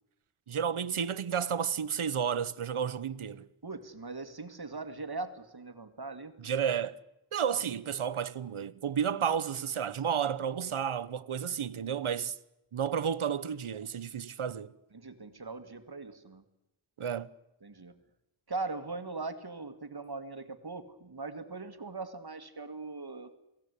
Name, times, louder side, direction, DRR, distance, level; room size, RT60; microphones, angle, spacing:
voice 1, 0.5-3.5 6.4-7.0 7.3-12.4 12.7-14.7 17.0-17.3, right 8 dB, 80° right, 1.1 m, -32 dB
voice 2, 3.6-6.3 14.9-16.4 17.6-17.9 18.5-23.4, right 3 dB, 50° right, 2.1 m, -40 dB
28.5 x 19.0 x 8.4 m
wide cardioid pair, 75°, 49 cm